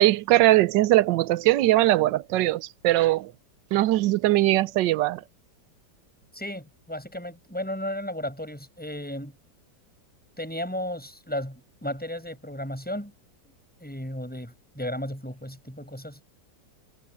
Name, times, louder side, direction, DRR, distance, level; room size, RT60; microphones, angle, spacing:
voice 1, 0.0-3.3 3.7-5.2, right 16 dB, 85° right, 1.3 m, -21 dB
voice 2, 6.3-9.4 10.4-13.1 13.8-16.2, left 1 dB, 5° left, 6.8 m, -34 dB
omnidirectional pair, 1.9 m